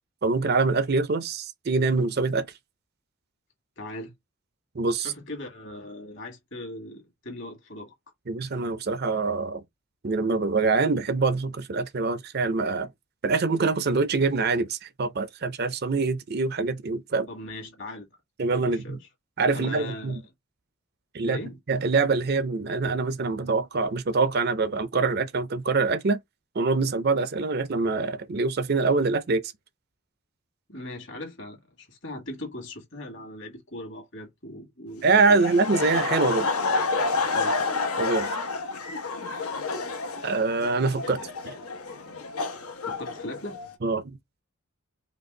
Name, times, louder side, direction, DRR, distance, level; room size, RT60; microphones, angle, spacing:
voice 1, 0.2-2.5 4.8-5.1 8.3-9.6 10.0-12.9 13.2-17.3 18.4-19.0 19.4-20.2 21.1-21.4 21.7-26.2 26.6-29.4 35.0-36.5 38.0-38.3 40.2-41.2 43.8-44.2, right 4 dB, 45° right, 0.5 m, -24 dB
voice 2, 3.8-4.1 5.0-7.9 17.3-18.1 18.7-19.1 19.5-20.2 21.2-21.6 30.7-35.4 37.3-37.7 41.0-41.3 42.9-43.6, left 1 dB, 55° left, 2.0 m, -39 dB
Laughter, 35.2-43.7, left 3 dB, 85° left, 1.0 m, -29 dB
5.2 x 2.5 x 3.7 m
head